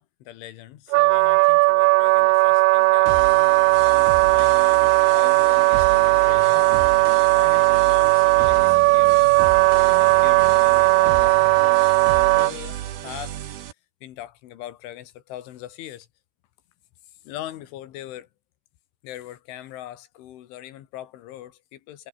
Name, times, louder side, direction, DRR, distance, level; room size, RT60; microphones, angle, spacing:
voice 1, 0.0-6.8 7.3-9.4 9.9-13.4 14.0-16.1 17.2-18.3 19.0-22.1, left 13 dB, 85° left, 4.1 m, -41 dB
Wind instrument woodwind instrument, 0.9-12.5, right 24 dB, 85° right, 2.6 m, -17 dB
sound 1, 3.1-13.7, right 11 dB, 60° right, 3.4 m, -34 dB
omnidirectional pair, 5.5 m